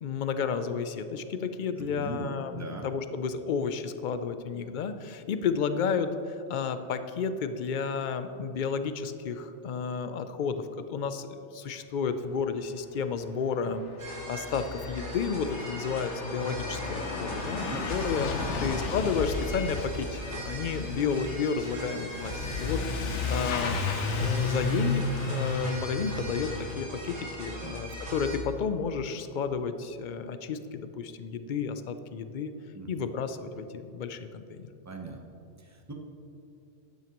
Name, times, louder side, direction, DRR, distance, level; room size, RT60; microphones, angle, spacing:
voice 1, 0.0-18.3 18.6-23.8 24.2-32.5 32.9-34.7, left 6 dB, 55° left, 10 dB, 0.5 m, -32 dB
voice 2, 1.8-2.2 2.5-2.9 17.3-17.8 18.4-18.7 27.6-27.7 32.7-32.9 34.8-35.2 35.6-35.9, right 2 dB, 15° right, 2 dB, 0.8 m, -40 dB
Truck / Accelerating revving vroom, 13.1-13.2 13.3-26.7, left 4 dB, 75° left, 1.2 m, -33 dB
sound 1, 14.0-28.4, equal, 75° right, 2.2 m, -40 dB
12.0 x 9.4 x 3.0 m, 2.7 s
omnidirectional pair, 1.2 m